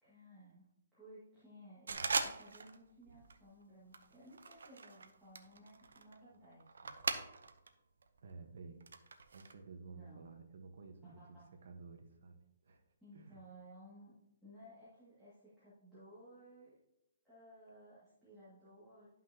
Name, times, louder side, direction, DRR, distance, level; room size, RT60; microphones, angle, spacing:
voice 1, 0.0-0.7 0.9-6.9 9.9-10.3 11.0-11.4 13.0-14.1 14.4-16.7 17.2-19.2, equal, ahead, -15 dB, 2.1 m, -58 dB
sound 1, 1.9-2.8 3.1-3.4 3.9-7.7 8.0-9.5, right 4 dB, 85° right, 0.8 m, -41 dB
voice 2, 8.2-8.8 9.3-12.8 13.1-13.4, right 4 dB, 55° right, 5 dB, 1.2 m, -53 dB
11.5 x 5.8 x 2.8 m, 0.87 s
hypercardioid pair, 170°, 0 cm